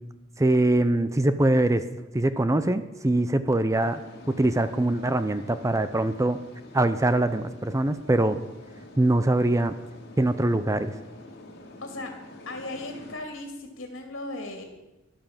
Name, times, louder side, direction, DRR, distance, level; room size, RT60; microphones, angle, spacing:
voice 1, 0.4-1.8 2.1-4.0 4.3-6.4 6.7-8.4 9.0-9.7 10.2-10.9, right 1 dB, 15° right, 11 dB, 0.6 m, -23 dB
sound 1, 3.7-13.2, left 1 dB, 55° left, 2.6 m, -47 dB
voice 2, 11.8-12.1 12.5-14.6, left 2 dB, 75° left, 4 dB, 2.4 m, -37 dB
13.0 x 11.5 x 7.2 m, 1.0 s
head